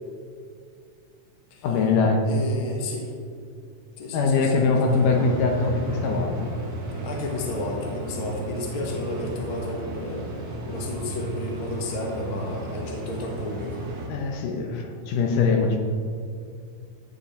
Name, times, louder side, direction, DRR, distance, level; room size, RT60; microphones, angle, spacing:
voice 1, 1.6-2.3 4.1-6.5 14.1-15.8, left 4 dB, 80° left, 2 dB, 2.6 m, -22 dB
voice 2, 2.3-3.1 4.0-5.2 7.0-10.3 10.7-13.8, left 2 dB, 45° left, 0 dB, 2.2 m, -32 dB
sound 1, 4.9-14.1, right 2 dB, 60° right, 3.0 m, -34 dB
14.0 x 8.4 x 4.3 m, 2.3 s
omnidirectional pair, 3.7 m